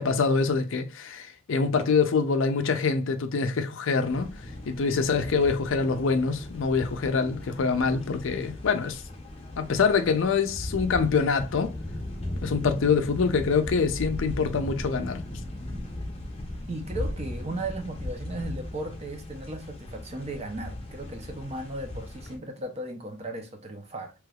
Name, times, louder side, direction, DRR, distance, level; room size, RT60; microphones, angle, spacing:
voice 1, 0.0-4.3 4.7-9.0 9.6-11.7 12.4-15.2, left 5 dB, 65° left, 0.4 m, -25 dB
sound 1, 4.0-22.4, left 1 dB, 30° left, 0.7 m, -37 dB
voice 2, 16.7-24.1, right 1 dB, 30° right, 0.6 m, -36 dB
3.3 x 3.0 x 2.3 m
head